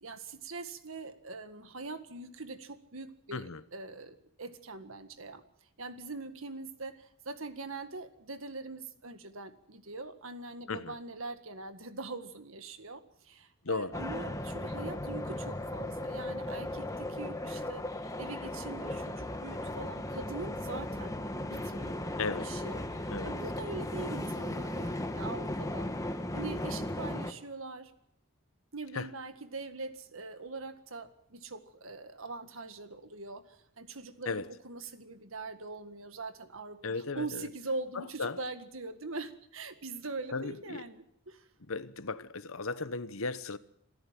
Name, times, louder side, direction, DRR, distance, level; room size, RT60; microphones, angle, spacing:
voice 1, 0.0-5.4 5.8-17.8 18.2-22.0 22.4-27.9 28.7-41.5, right 3 dB, 70° right, 1.8 m, -42 dB
voice 2, 3.3-3.6 10.7-10.9 13.6-13.9 22.2-22.6 23.1-23.3 28.9-29.1 34.3-34.5 36.8-37.4 37.9-38.4 40.3-40.8 41.7-43.6, left 4 dB, 70° left, 1.1 m, -36 dB
sound 1, 13.9-27.3, left 1 dB, 15° left, 1.2 m, -36 dB
27.0 x 13.5 x 7.6 m
head